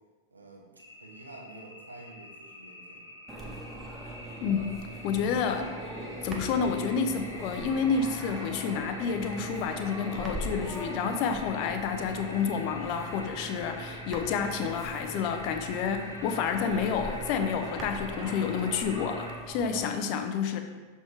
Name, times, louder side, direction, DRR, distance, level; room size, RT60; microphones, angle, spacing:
voice 1, 0.3-0.7 1.0-3.0 3.3-3.6, right 2 dB, 75° right, -1 dB, 1.1 m, -49 dB
sound 1, 0.8-19.4, left 1 dB, 90° left, 0.8 m, -46 dB
sound 2, 3.3-19.8, right 1 dB, 20° right, 0.8 m, -40 dB
voice 2, 4.4-4.7 5.0-5.7 6.2-20.6, left 6 dB, 45° left, 7 dB, 0.5 m, -29 dB
6.4 x 3.4 x 4.6 m, 1.4 s
figure-of-eight pair, 90°, 0 cm